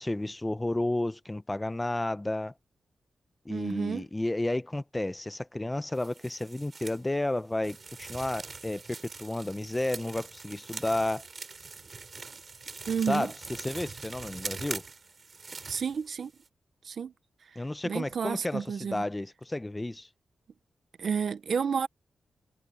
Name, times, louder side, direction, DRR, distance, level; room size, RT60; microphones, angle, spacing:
voice 1, 0.0-2.5 3.5-11.2 13.1-14.8 17.6-20.1, left 1 dB, 10° left, 0.6 m, -32 dB
voice 2, 3.5-4.1 12.9-13.3 15.7-16.3 16.8-17.1 17.8-19.0 21.0-21.9, right 6 dB, 55° right, 0.6 m, -30 dB
sound 1, 5.9-7.0 7.6-16.5, right 4 dB, 35° right, 4.7 m, -43 dB
wide cardioid pair, 155°, 0 cm